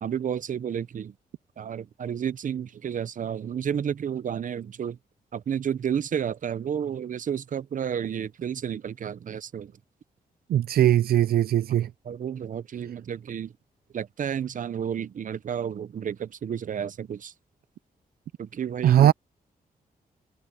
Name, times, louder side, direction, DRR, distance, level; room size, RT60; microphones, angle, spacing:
voice 1, 0.0-1.1 1.6-5.0 5.3-9.7 11.7-13.5 13.9-17.3 18.4-19.1, right 8 dB, 60° right, 0.8 m, -31 dB
voice 2, 10.5-11.9 18.8-19.1, right 11 dB, 80° right, 0.5 m, -19 dB
cardioid pair, 85°, 16 cm